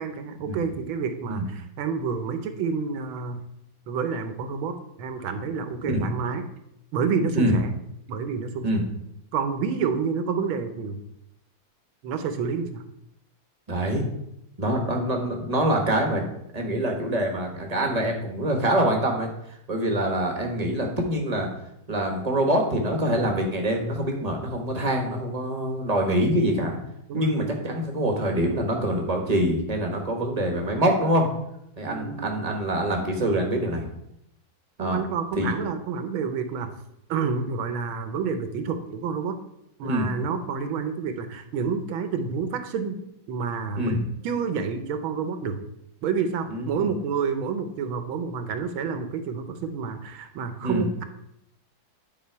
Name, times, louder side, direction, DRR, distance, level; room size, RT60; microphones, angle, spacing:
voice 1, 0.0-3.4 3.9-6.4 6.9-7.7 8.1-8.7 9.3-11.0 12.0-12.8 27.1-27.3 31.9-32.5 34.8-36.7 37.1-39.4 39.8-43.0 43.3-45.6 46.0-51.0, right 5 dB, 80° right, 8 dB, 1.6 m, -29 dB
voice 2, 13.7-14.0 14.6-16.3 16.5-21.5 21.9-26.8 27.1-31.3 31.8-33.9 34.8-35.0 35.4-35.6 39.8-40.1 43.8-44.0 46.5-46.9 50.6-50.9, right 1 dB, 25° right, 2 dB, 0.9 m, -25 dB
9.5 x 4.1 x 4.6 m, 0.79 s
omnidirectional pair, 2.2 m